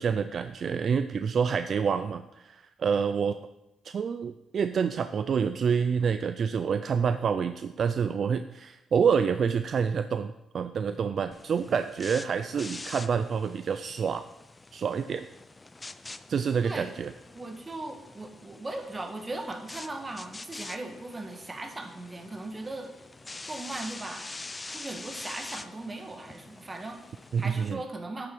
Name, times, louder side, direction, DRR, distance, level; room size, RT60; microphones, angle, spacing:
voice 1, 0.0-3.4 3.8-14.2 14.7-15.3 16.3-17.1 27.3-27.8, right 6 dB, 50° right, 10 dB, 0.4 m, -27 dB
sound 1, 11.3-27.7, left 3 dB, 20° left, 0.4 m, -45 dB
voice 2, 17.3-22.9 23.5-24.3 24.7-28.3, right 2 dB, 25° right, 5 dB, 1.4 m, -38 dB
8.7 x 6.9 x 4.5 m, 0.91 s
cardioid pair, 90°, 0 cm